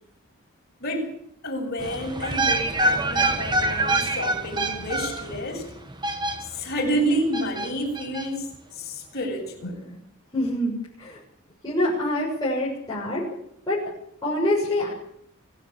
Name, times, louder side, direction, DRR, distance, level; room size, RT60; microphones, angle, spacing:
voice 1, 1.4-5.7 6.4-9.8, equal, 45° left, 0 dB, 7.7 m, -29 dB
sound 1, 1.8-6.8 7.3-8.3 8.5-8.6, right 2 dB, 20° right, 1.6 m, -26 dB
voice 2, 10.3-10.7 11.0-11.2 11.6-13.2 13.7-13.8 14.2-14.9, left 1 dB, 20° left, -7 dB, 7.2 m, -25 dB
24.5 x 14.0 x 8.8 m, 0.71 s
head